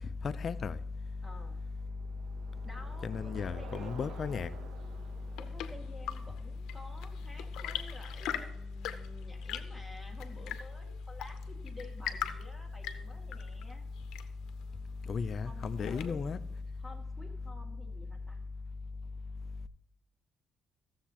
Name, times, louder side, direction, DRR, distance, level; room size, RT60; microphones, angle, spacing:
voice 1, 0.2-0.7 3.0-4.5 15.1-16.4, left 5 dB, 50° left, 0.5 m, -34 dB
voice 2, 1.2-1.6 2.6-4.4 5.4-13.9 15.5-16.3 16.8-18.4, left 1 dB, ahead, 2.2 m, -52 dB
Bicycle, 1.5-7.9, right 7 dB, 85° right, 0.8 m, -53 dB
Chirp tweet / Engine / Tap, 4.9-16.4, left 10 dB, 90° left, 0.7 m, -43 dB
15.0 x 7.2 x 2.9 m
cardioid pair, 90°, 0 cm